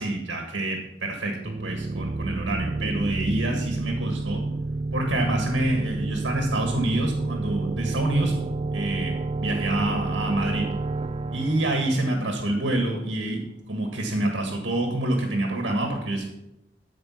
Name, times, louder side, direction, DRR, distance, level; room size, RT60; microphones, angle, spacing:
voice 1, 0.0-4.4 4.9-8.4 8.7-10.7 11.3-13.4 13.7-16.3, right 1 dB, 80° right, 2 dB, 1.8 m, -27 dB
sound 1, 1.4-13.0, right 2 dB, 30° right, 0.4 m, -30 dB
13.5 x 5.0 x 5.8 m, 0.89 s
head